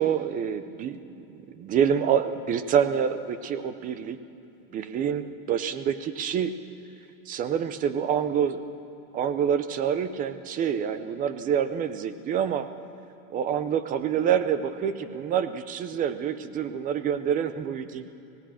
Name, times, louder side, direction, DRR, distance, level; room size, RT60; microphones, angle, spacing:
voice 1, 0.0-4.2 4.7-6.5 7.3-8.7 9.1-12.7 13.3-18.1, right 8 dB, 20° right, 12 dB, 0.5 m, -27 dB
24.0 x 18.0 x 6.3 m, 2.8 s
supercardioid pair, 155°, 44 cm